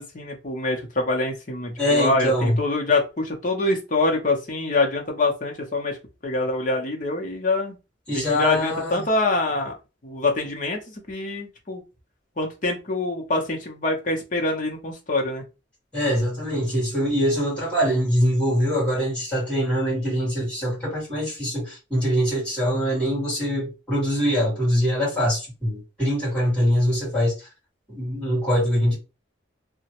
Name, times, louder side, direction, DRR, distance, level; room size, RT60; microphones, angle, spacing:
voice 1, 0.0-6.0 6.2-7.8 8.1-9.8 10.0-11.8 12.4-15.4, left 2 dB, 40° left, 0.8 m, -25 dB
voice 2, 1.8-2.6 8.1-9.1 15.9-27.5 27.9-29.0, equal, 5° left, 1.8 m, -23 dB
3.0 x 2.2 x 2.9 m
head